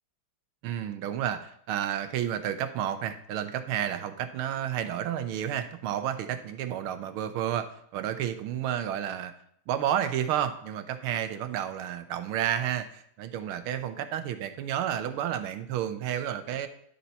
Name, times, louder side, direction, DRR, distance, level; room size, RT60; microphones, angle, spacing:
voice 1, 0.6-7.7 7.9-9.3 9.7-16.7, right 10 dB, 80° right, 9 dB, 1.5 m, -31 dB
11.5 x 4.1 x 4.3 m, 0.68 s
omnidirectional pair, 2.4 m